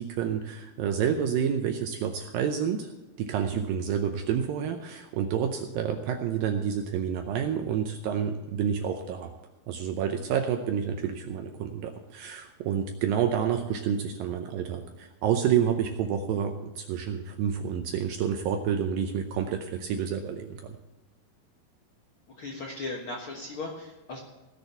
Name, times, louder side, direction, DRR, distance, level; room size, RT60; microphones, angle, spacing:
voice 1, 0.0-2.9 3.2-9.3 9.7-20.7, right 8 dB, 75° right, 5 dB, 2.2 m, -29 dB
voice 2, 22.4-24.2, left 2 dB, 75° left, -1 dB, 1.2 m, -37 dB
17.5 x 6.6 x 6.8 m, 1.1 s
omnidirectional pair, 4.7 m